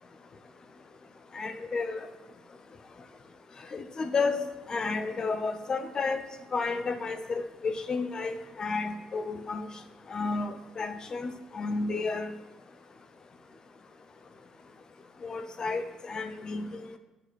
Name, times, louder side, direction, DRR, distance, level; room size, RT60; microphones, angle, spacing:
voice 1, 1.3-2.1 3.7-6.2 6.5-9.7 10.1-12.4 15.2-16.9, left 4 dB, 30° left, 9 dB, 0.6 m, -32 dB
8.9 x 4.9 x 6.1 m, 1.1 s
cardioid pair, 155°, 2 cm